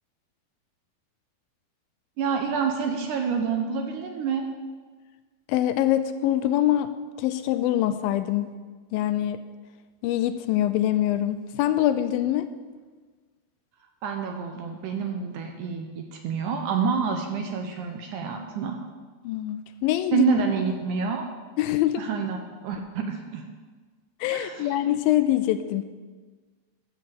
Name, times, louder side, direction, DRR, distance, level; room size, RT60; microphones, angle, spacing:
voice 1, 2.2-4.5 14.0-18.8 20.1-21.3 22.0-22.4 22.6-23.4 24.3-24.8, right 5 dB, 75° right, 4 dB, 2.0 m, -27 dB
voice 2, 5.5-6.9 7.2-8.5 8.9-9.4 10.0-12.5 19.2-20.3 21.6-22.0 24.2-25.8, left 12 dB, 80° left, 11 dB, 2.2 m, -24 dB
13.0 x 6.6 x 7.5 m, 1.4 s
omnidirectional pair, 4.3 m